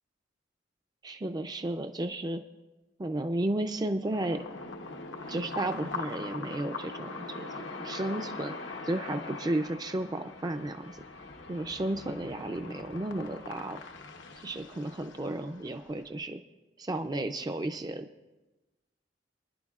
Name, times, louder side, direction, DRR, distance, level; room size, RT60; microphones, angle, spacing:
voice 1, 1.0-2.4 3.0-4.4 5.3-11.0 11.5-13.8 14.4-16.4 16.8-18.1, right 1 dB, 20° right, 7 dB, 0.4 m, -33 dB
sound 1, 4.1-16.1, left 3 dB, 90° left, 1.0 m, -42 dB
25.5 x 10.5 x 2.4 m, 1.1 s
head